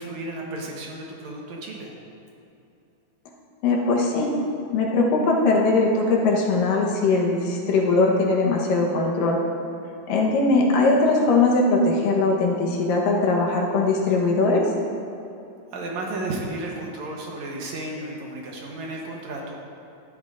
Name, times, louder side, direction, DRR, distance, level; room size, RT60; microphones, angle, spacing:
voice 1, 0.0-1.9 15.7-19.6, right 2 dB, 65° right, -2 dB, 2.2 m, -33 dB
voice 2, 3.6-4.3 4.7-9.4 10.1-14.7, left 3 dB, 85° left, -1 dB, 2.8 m, -20 dB
13.0 x 11.5 x 2.6 m, 2.7 s
omnidirectional pair, 3.9 m